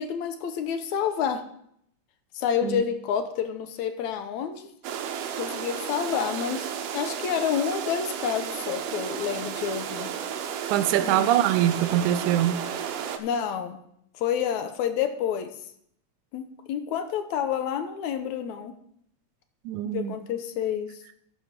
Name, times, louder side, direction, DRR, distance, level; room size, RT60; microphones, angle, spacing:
voice 1, 0.0-1.4 2.3-4.7 5.4-10.1 11.0-11.3 13.2-13.8 14.2-15.5 16.3-18.8 19.8-20.9, left 8 dB, 75° left, 2.2 m, -29 dB
sound 1, 4.8-13.2, right 8 dB, 70° right, 1.6 m, -33 dB
voice 2, 10.7-12.6 19.7-20.2, right 12 dB, 90° right, 2.1 m, -23 dB
14.5 x 5.2 x 5.9 m
omnidirectional pair, 3.4 m